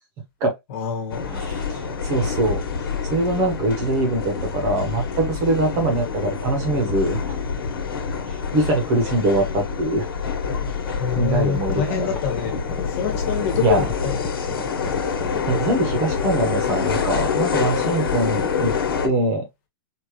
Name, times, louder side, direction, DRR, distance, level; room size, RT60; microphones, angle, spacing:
voice 1, 0.7-1.4 11.0-14.2 17.8-18.1, left 7 dB, 35° left, 1.5 m, -26 dB
sound 1, 1.1-19.1, left 5 dB, 70° left, 1.5 m, -26 dB
voice 2, 1.3-2.6 3.1-7.3 8.5-10.1 11.1-12.1 13.6-13.9 15.4-18.7 19.0-19.4, right 2 dB, 25° right, 1.1 m, -23 dB
sound 2, 11.1-11.2 11.5-16.2, left 4 dB, 5° left, 0.7 m, -34 dB
5.0 x 2.7 x 3.0 m
hypercardioid pair, 170°, 12 cm